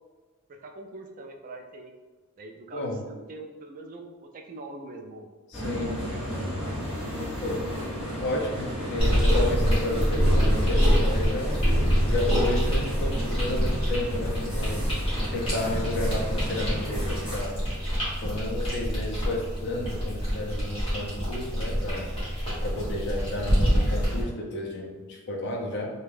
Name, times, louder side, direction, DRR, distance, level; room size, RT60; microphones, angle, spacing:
voice 1, 0.5-1.9 2.4-5.3 5.9-6.9, right 2 dB, 40° right, 3 dB, 0.3 m, -43 dB
voice 2, 2.7-3.1 5.5-6.0 7.4-7.6 8.2-11.6 12.0-14.9 15.3-17.5 18.2-22.0 22.6-25.9, left 1 dB, 55° left, 0 dB, 0.5 m, -32 dB
sound 1, 5.5-17.4, equal, 5° right, 1.0 m, -34 dB
sound 2, 9.0-24.2, equal, 25° left, 1.0 m, -26 dB
2.5 x 2.2 x 3.2 m, 1.3 s
head